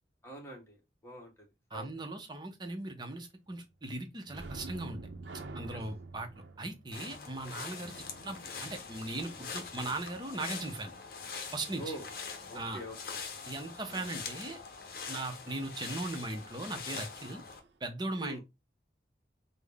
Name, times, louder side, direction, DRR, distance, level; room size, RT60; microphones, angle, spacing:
voice 1, 0.2-1.9 5.7-5.8 11.8-12.1 12.5-13.0 13.9-14.1 18.2-18.4, right 1 dB, 15° left, 1.1 m, -45 dB
voice 2, 1.7-5.0 5.5-6.3 6.6-7.9 8.2-10.9 11.5-12.0 12.5-12.8 13.5-14.6 15.1-17.4 17.8-18.4, right 2 dB, 25° right, 0.6 m, -38 dB
sound 1, 4.3-9.7 17.0-17.2 17.5-17.7, right 3 dB, 85° right, 0.6 m, -47 dB
sound 2, 6.9-17.6, left 5 dB, 55° left, 0.7 m, -43 dB
3.8 x 2.0 x 3.4 m
head